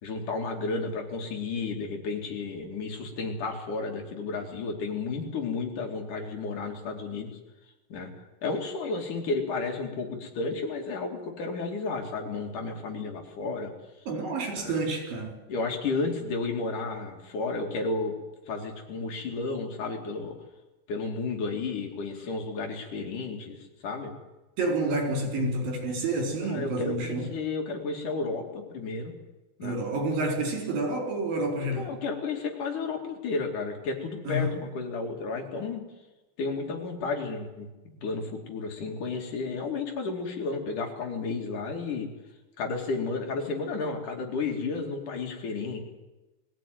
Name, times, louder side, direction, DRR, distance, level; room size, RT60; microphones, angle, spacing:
voice 1, 0.0-7.4 7.9-8.1 8.4-13.7 14.5-14.8 15.5-18.1 18.5-20.3 20.9-24.1 26.4-29.1 29.6-29.8 31.6-35.8 36.4-37.7 38.0-42.1 42.6-45.8, left 4 dB, 60° left, 2 dB, 4.0 m, -32 dB
voice 2, 14.1-15.4 24.6-27.3 29.6-31.9 34.3-34.5, right 2 dB, 75° right, 3 dB, 5.9 m, -29 dB
21.5 x 15.5 x 9.4 m, 1.1 s
omnidirectional pair, 4.1 m